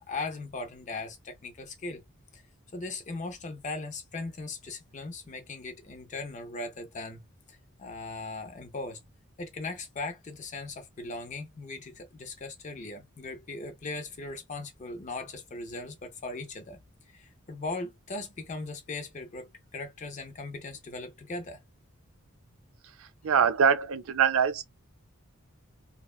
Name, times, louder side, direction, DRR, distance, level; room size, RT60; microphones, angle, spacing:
voice 1, 0.0-2.0 2.3-2.4 2.7-9.0 9.4-16.8 17.1-21.6, left 3 dB, 35° left, 0.5 m, -39 dB
voice 2, 23.0-24.6, right 7 dB, 75° right, 0.5 m, -24 dB
2.7 x 2.1 x 2.3 m
head